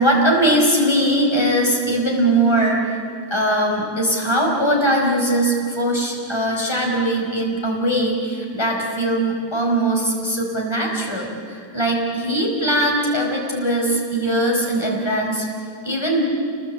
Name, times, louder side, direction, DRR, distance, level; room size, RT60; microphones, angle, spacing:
voice 1, 0.0-3.0 3.3-15.4 15.8-16.2, right 1 dB, 15° left, -1 dB, 4.9 m, -20 dB
28.5 x 21.5 x 8.4 m, 2.3 s
omnidirectional pair, 2.1 m